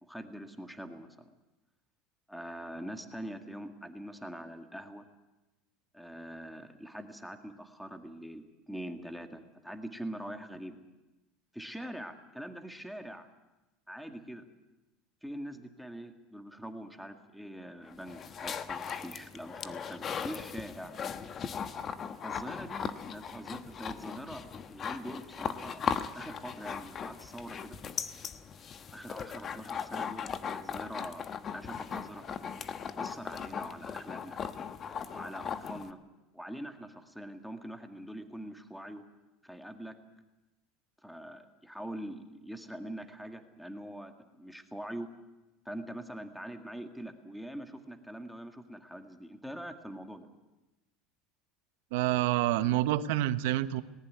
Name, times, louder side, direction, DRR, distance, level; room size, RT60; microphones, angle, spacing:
voice 1, 0.0-1.3 2.3-5.1 5.9-10.8 11.5-13.3 13.9-14.4 15.2-20.9 22.2-27.8 28.9-31.2 31.5-32.2 32.9-34.4 35.1-36.0 36.3-39.0 39.4-40.0 41.0-45.1 45.7-50.3, equal, ahead, 7 dB, 1.9 m, -43 dB
sound 1, 17.9-35.9, left 7 dB, 35° left, 1.2 m, -38 dB
voice 2, 51.9-53.8, right 14 dB, 80° right, 13 dB, 1.0 m, -27 dB
19.0 x 18.5 x 9.5 m, 1.0 s
supercardioid pair, 130°, 0 cm